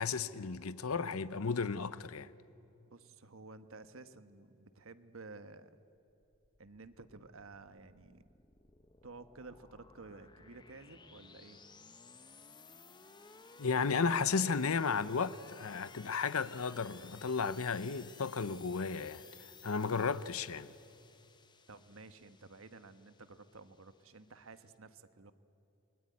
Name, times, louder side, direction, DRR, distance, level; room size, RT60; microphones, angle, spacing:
voice 1, 0.0-2.3 13.6-19.2 19.6-20.7, left 5 dB, 75° left, 0.8 m, -34 dB
voice 2, 2.9-5.7 6.6-8.2 9.0-11.6 21.7-25.3, right 3 dB, 65° right, 1.2 m, -53 dB
sound 1, 6.2-24.7, left 4 dB, 20° left, 0.9 m, -58 dB
28.5 x 20.5 x 9.6 m
head